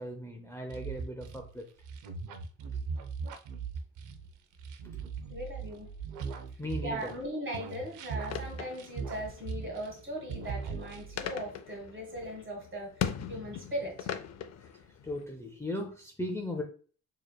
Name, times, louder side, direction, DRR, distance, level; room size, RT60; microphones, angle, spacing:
voice 1, 0.0-1.7 4.9-5.0 6.6-7.1 14.6-14.7 15.0-16.6, left 1 dB, 10° left, 0.6 m, -37 dB
sound 1, 0.7-7.2 7.5-10.0 10.3-11.4, right 5 dB, 85° right, 0.6 m, -39 dB
voice 2, 5.3-5.9 6.8-14.1, equal, 40° right, 1.6 m, -39 dB
sound 2, 7.6-15.2, left 8 dB, 60° left, 0.5 m, -41 dB
4.6 x 3.1 x 2.2 m
cardioid pair, 90°, 30 cm